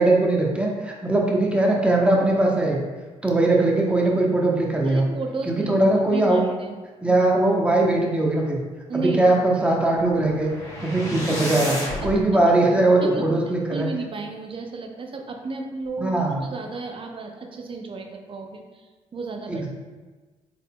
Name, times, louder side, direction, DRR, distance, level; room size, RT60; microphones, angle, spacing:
voice 1, 0.0-2.8 3.2-5.0 5.5-6.4 7.0-8.6 8.9-10.5 10.8-13.9 16.0-16.4 19.5-19.7, right 2 dB, 10° right, -2 dB, 0.9 m, -20 dB
voice 2, 4.8-5.7 6.1-6.8 7.0-7.2 8.9-9.3 12.0-12.5 13.0-13.3 13.7-19.7, right 3 dB, 40° right, 3 dB, 0.6 m, -33 dB
sound 1, 10.0-12.2, left 1 dB, 25° left, 1.4 m, -31 dB
3.8 x 3.7 x 2.2 m, 1.3 s
supercardioid pair, 55°, 13 cm